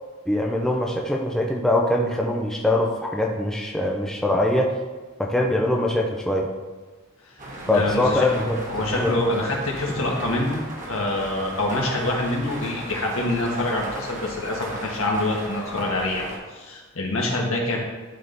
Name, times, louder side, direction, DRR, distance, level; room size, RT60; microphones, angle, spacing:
voice 1, 0.3-4.8 5.2-6.5 7.7-8.6 9.0-9.1, left 1 dB, ahead, -1 dB, 0.5 m, -22 dB
sound 1, 7.4-16.4, right 1 dB, 40° right, 1.3 m, -36 dB
voice 2, 7.7-8.3 8.7-10.6 10.9-17.8, left 1 dB, 80° left, -1 dB, 1.5 m, -25 dB
11.0 x 3.7 x 3.9 m, 1.3 s
head